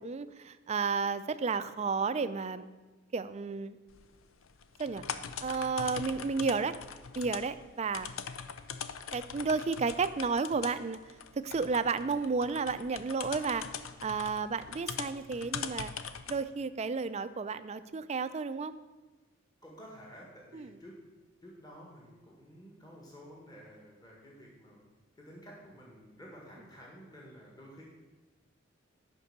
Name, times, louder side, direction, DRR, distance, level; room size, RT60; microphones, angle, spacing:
voice 1, 0.0-2.7 3.1-3.8 4.8-5.0 5.4-6.8 7.2-8.1 9.1-11.0 11.4-13.7 14.0-15.9 16.3-18.7 20.5-20.7, right 4 dB, 35° right, 12 dB, 0.4 m, -32 dB
sound 1, 3.9-16.4, left 7 dB, 85° left, 0.6 m, -42 dB
voice 2, 19.6-21.0 21.4-24.9 25.2-27.8, equal, 20° left, -3 dB, 1.7 m, -51 dB
10.5 x 5.3 x 6.6 m, 1.2 s
head